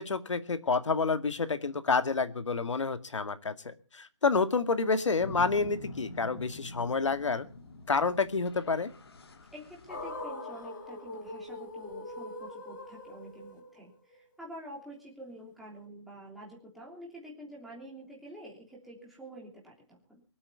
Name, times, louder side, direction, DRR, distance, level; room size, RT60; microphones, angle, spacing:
voice 1, 0.0-7.5 7.9-8.9, left 4 dB, 70° left, 10 dB, 2.1 m, -29 dB
sound 1, 5.2-10.2, left 2 dB, 50° left, 2.3 m, -45 dB
voice 2, 9.5-20.2, right 1 dB, ahead, -4 dB, 3.2 m, -48 dB
sound 2, 9.9-14.1, left 2 dB, 35° left, 4.9 m, -42 dB
23.0 x 8.7 x 7.1 m, 0.40 s
hypercardioid pair, 170°, 16 cm